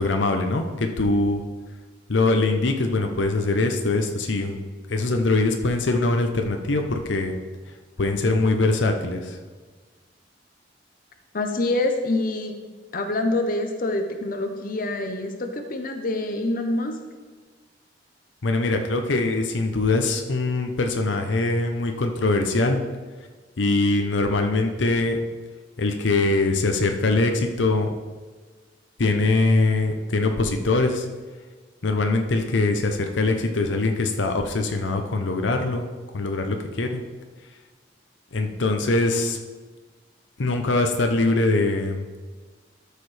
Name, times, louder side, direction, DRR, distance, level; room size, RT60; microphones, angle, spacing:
voice 1, 0.0-1.4 2.1-4.6 4.9-7.3 8.0-9.4 18.4-22.8 23.6-25.2 25.8-27.9 29.0-31.1 31.8-35.9 36.1-37.0 38.3-39.4 40.4-42.0, left 2 dB, 80° left, 5 dB, 0.7 m, -22 dB
voice 2, 11.3-12.6 12.9-17.0, left 2 dB, 50° left, 5 dB, 0.8 m, -26 dB
13.0 x 6.7 x 3.3 m, 1.4 s
head